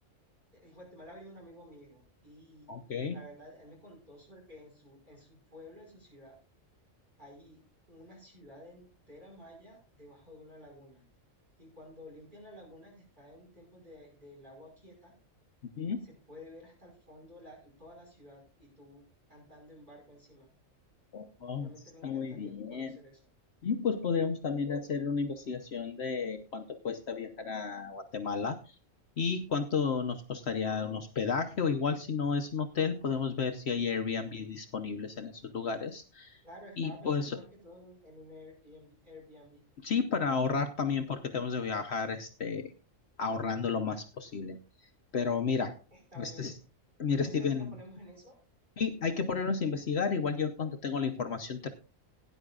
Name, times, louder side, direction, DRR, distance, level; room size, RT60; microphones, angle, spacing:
voice 1, 0.5-2.7 3.1-6.4 7.2-7.6 7.9-11.1 11.6-15.1 16.0-19.0 19.3-20.5 21.6-23.2 34.2-34.5 36.4-39.6 45.9-46.6 47.1-48.4, equal, 35° right, -1 dB, 5.5 m, -52 dB
voice 2, 2.7-3.2 15.8-16.1 21.1-21.7 22.0-23.0 23.6-28.8 29.2-36.4 36.8-37.4 39.8-42.7 43.2-44.6 45.1-45.8 46.2-46.5 47.0-47.7 48.8-51.7, left 5 dB, 55° left, 6 dB, 1.0 m, -32 dB
18.0 x 10.0 x 2.4 m, 0.31 s
omnidirectional pair, 1.4 m